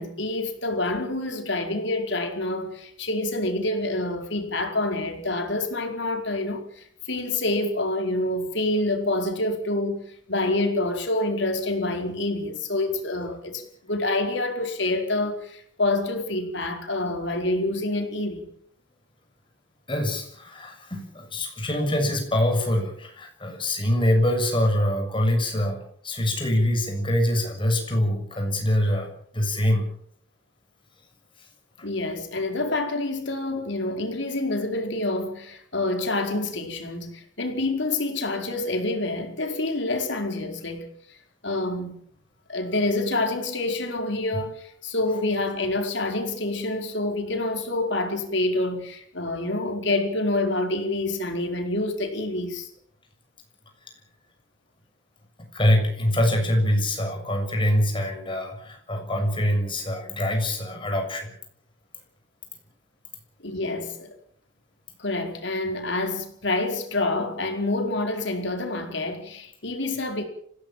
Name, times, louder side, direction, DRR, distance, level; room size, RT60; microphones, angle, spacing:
voice 1, 0.0-18.5 31.8-41.2 41.4-41.9 42.5-52.7 63.4-64.1 65.0-70.3, left 2 dB, 65° left, 4.7 m, -27 dB
voice 2, 19.9-30.0 31.8-31.9 55.4-61.4, left 1 dB, 25° left, 7.0 m, -24 dB
25.5 x 17.5 x 7.6 m
head